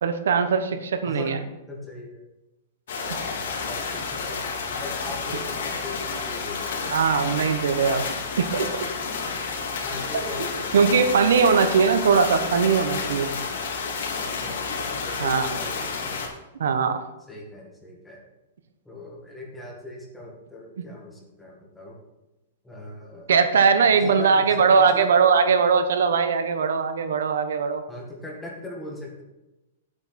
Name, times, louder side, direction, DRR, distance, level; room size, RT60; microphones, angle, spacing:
voice 1, 0.0-1.4 6.9-8.0 8.4-8.9 10.7-13.3 15.2-15.5 16.6-17.0 20.8-20.9 23.3-27.8, right 6 dB, 80° right, 9 dB, 1.0 m, -20 dB
voice 2, 1.7-2.2 3.2-6.7 9.6-11.7 14.1-16.2 17.3-18.2 18.9-22.0 22.6-23.3 23.8-25.1 27.9-29.2, left 2 dB, 5° left, -3 dB, 1.9 m, -40 dB
sound 1, 2.9-16.3, left 5 dB, 65° left, 3.0 m, -30 dB
9.6 x 8.5 x 4.3 m, 1.0 s
hypercardioid pair, 170°, 0 cm